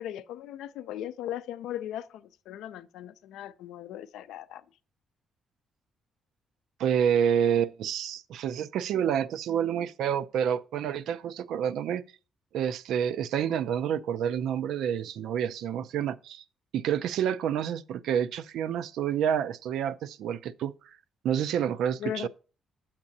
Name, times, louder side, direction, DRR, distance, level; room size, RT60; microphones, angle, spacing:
voice 1, 0.0-4.6 22.0-22.3, left 11 dB, 85° left, 0.4 m, -38 dB
voice 2, 6.8-12.0 12.5-16.4 16.7-20.7 21.2-22.3, right 9 dB, 80° right, 0.4 m, -28 dB
9.6 x 7.2 x 2.7 m
cardioid pair, 90°, 0 cm